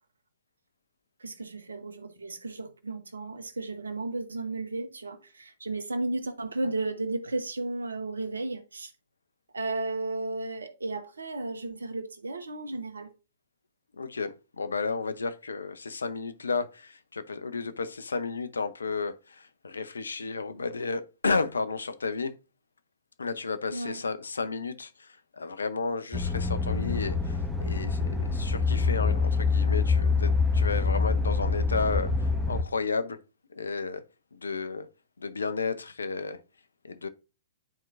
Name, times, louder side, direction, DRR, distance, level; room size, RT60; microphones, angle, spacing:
voice 1, 1.2-8.9 9.5-13.1 23.7-24.0, right 2 dB, 80° right, 1.0 m, -34 dB
voice 2, 13.9-22.3 23.2-33.2 33.5-34.0 34.3-34.9 35.2-36.4 36.8-37.1, left 4 dB, 75° left, 0.7 m, -32 dB
sound 1, 26.1-32.6, left 4 dB, 5° right, 1.3 m, -26 dB
10.5 x 4.5 x 2.5 m
figure-of-eight pair, 115°, 0 cm